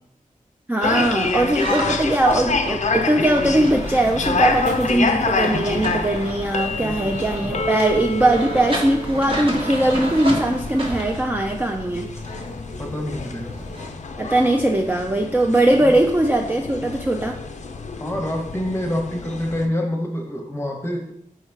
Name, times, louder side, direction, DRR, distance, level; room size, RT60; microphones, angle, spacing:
voice 1, 0.7-12.1 14.2-17.4, right 1 dB, 10° right, 2 dB, 0.3 m, -20 dB
sound 1, 0.8-19.7, left 3 dB, 55° left, 0.4 m, -27 dB
sound 2, 1.3-13.9, equal, 40° right, 1.0 m, -33 dB
sound 3, 3.4-11.0, right 1 dB, 60° right, 0.7 m, -37 dB
voice 2, 6.8-7.7 8.0-8.1 12.8-13.6 15.7-16.0 18.0-21.1, left 1 dB, 15° left, 2 dB, 0.8 m, -27 dB
4.6 x 2.2 x 4.5 m, 0.75 s
wide cardioid pair, 70°, 14 cm